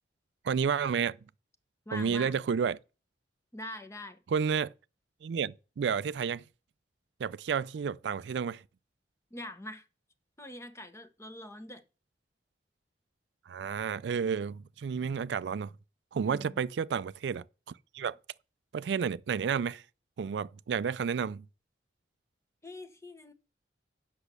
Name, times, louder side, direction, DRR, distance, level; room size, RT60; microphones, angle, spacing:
voice 1, 0.4-1.2 1.9-2.8 4.3-4.7 5.2-6.4 7.2-8.6 13.5-15.7 16.1-17.4 17.9-18.2 18.7-19.8 20.2-21.4, right 6 dB, 80° right, 0.4 m, -31 dB
voice 2, 1.9-2.4 3.5-4.2 9.3-9.9 10.4-11.8 16.2-16.6 22.6-23.3, left 1 dB, 15° left, 0.9 m, -43 dB
8.1 x 6.1 x 6.7 m
head